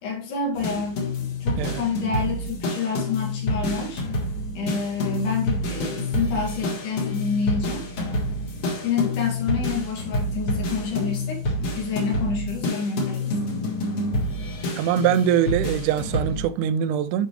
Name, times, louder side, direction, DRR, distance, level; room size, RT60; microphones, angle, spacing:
voice 1, 0.0-4.0 4.6-7.8 8.8-13.3, left 5 dB, 90° left, 3.8 m, -28 dB
sound 1, 0.6-16.5, left 1 dB, 55° left, 2.6 m, -28 dB
voice 2, 14.7-17.3, right 9 dB, 85° right, 2.1 m, -23 dB
10.0 x 5.1 x 3.2 m
omnidirectional pair, 3.6 m